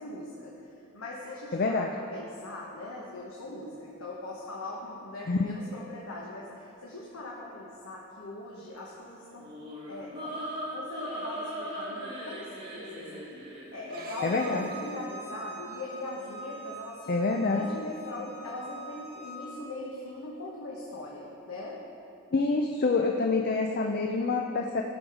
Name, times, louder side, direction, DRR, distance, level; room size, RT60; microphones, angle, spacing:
voice 1, 0.0-9.5 9.9-10.4 10.7-13.5 13.7-21.8, left 2 dB, 75° left, -3 dB, 1.2 m, -41 dB
voice 2, 1.5-1.9 5.3-5.6 14.2-14.7 17.1-17.7 22.3-24.8, left 3 dB, 45° left, 3 dB, 0.5 m, -27 dB
sound 1, 9.4-14.6, equal, 25° right, 2.0 m, -39 dB
Bowed string instrument, 13.9-19.5, right 2 dB, 45° right, 1.1 m, -45 dB
14.5 x 6.3 x 5.0 m, 2.8 s
head